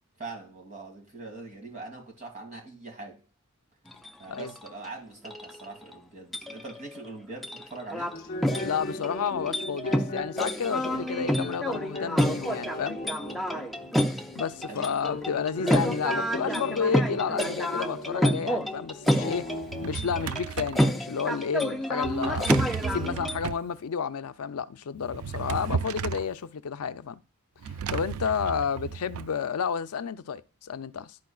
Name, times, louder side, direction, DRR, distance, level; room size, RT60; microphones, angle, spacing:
voice 1, 0.2-3.2 4.2-8.1 13.2-13.5 14.7-15.0, right 3 dB, 35° right, 2.1 m, -42 dB
sound 1, 3.9-4.1 4.3-4.7 5.2-5.9 6.3-7.1 7.4-8.2 8.4-23.4, equal, ahead, 0.4 m, -29 dB
sound 2, 8.1-20.0, left 2 dB, 40° left, 0.9 m, -39 dB
voice 2, 8.6-13.0 14.3-19.5 19.8-22.5 22.9-27.2 27.9-31.2, left 6 dB, 85° left, 0.5 m, -31 dB
Drawer open or close, 19.5-20.9 22.0-23.7 25.0-26.3 27.6-29.3, right 7 dB, 80° right, 0.3 m, -34 dB
11.5 x 4.4 x 2.4 m
head